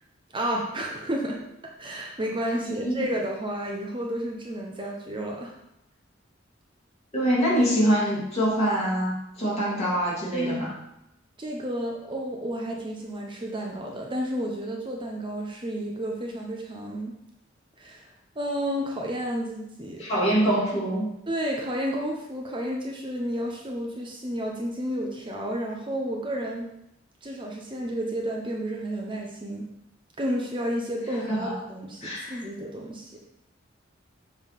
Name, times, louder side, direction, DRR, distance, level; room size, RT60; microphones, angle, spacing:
voice 1, 0.3-1.4 1.8-5.5 10.3-10.7 11.4-17.1 17.8-18.1 18.4-20.0 21.3-26.7 27.2-29.6 30.2-33.1, equal, 25° right, -1 dB, 0.8 m, -31 dB
voice 2, 7.1-10.7 20.0-21.1 31.3-31.5 32.0-32.4, equal, 35° left, -6 dB, 2.7 m, -24 dB
7.1 x 3.5 x 5.7 m, 0.83 s
head